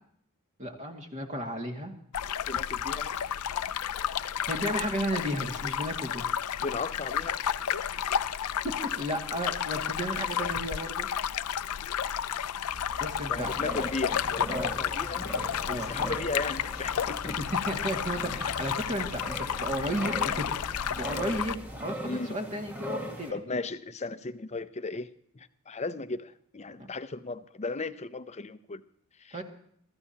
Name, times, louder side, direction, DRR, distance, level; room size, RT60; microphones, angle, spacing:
voice 1, 0.6-1.9 4.5-6.2 8.6-11.1 13.0-13.5 14.5-14.7 15.7-15.9 17.3-17.4 17.7-20.6 20.9-23.4 29.3-29.4, equal, 35° right, 3 dB, 2.2 m, -33 dB
sound 1, 2.1-21.6, left 9 dB, 80° left, 0.5 m, -32 dB
voice 2, 2.5-3.1 6.6-7.4 13.3-15.3 15.7-17.4 22.0-22.3 23.3-25.1 25.3-28.8 29.2-29.4, left 3 dB, 30° left, 13 dB, 0.7 m, -36 dB
Engine, 12.6-21.8, equal, 75° right, 5.4 m, -47 dB
sound 2, 13.3-23.3, right 1 dB, 5° right, 1.8 m, -40 dB
24.0 x 14.0 x 2.9 m, 0.64 s
head